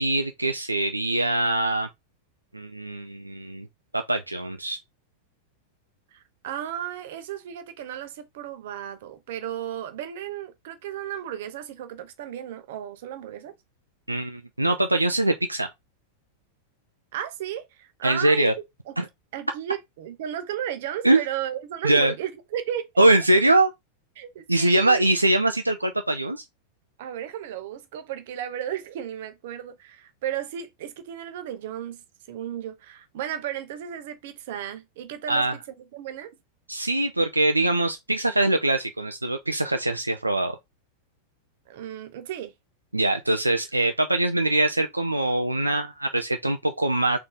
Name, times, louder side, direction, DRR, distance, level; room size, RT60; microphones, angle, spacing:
voice 1, 0.0-1.9 2.5-3.7 3.9-4.8 14.1-15.7 18.0-18.5 19.0-19.1 21.0-21.2 21.8-22.1 23.0-23.7 24.5-26.4 35.3-35.6 36.7-40.6 42.9-47.2, right 2 dB, 85° right, 0.4 m, -22 dB
voice 2, 6.1-13.5 17.1-18.5 18.9-19.0 19.3-22.9 24.2-25.0 27.0-35.5 35.9-36.3 41.7-42.5, right 10 dB, 55° right, 0.7 m, -34 dB
3.9 x 2.7 x 3.7 m
figure-of-eight pair, 90°, 0 cm